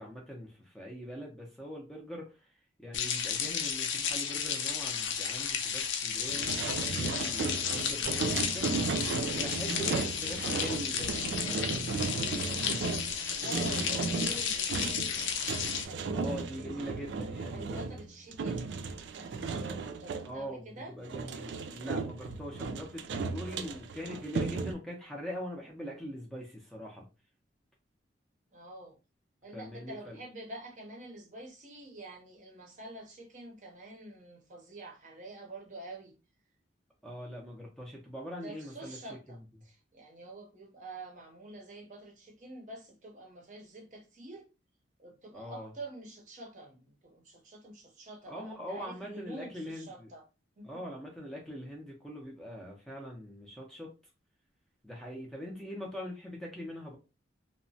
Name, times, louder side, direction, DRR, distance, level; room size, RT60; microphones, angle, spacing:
voice 1, 0.0-2.5 2.8-8.8 9.3-12.8 13.4-14.0 16.1-18.0 20.3-27.1 29.5-30.2 37.0-39.4 45.3-45.7 48.3-50.1 50.6-53.9 54.8-57.0, equal, ahead, 0.5 m, -42 dB
sound 1, 2.9-15.8, left 7 dB, 85° left, 0.5 m, -33 dB
sound 2, 6.3-20.3 21.0-24.7, right 4 dB, 75° right, 0.4 m, -35 dB
voice 2, 13.1-15.2 15.6-16.9 17.5-18.8 19.1-20.9 28.5-29.0 29.4-36.1 38.4-44.5 45.0-50.2 50.6-50.8, right 1 dB, 40° right, 0.6 m, -47 dB
2.8 x 2.1 x 2.7 m
head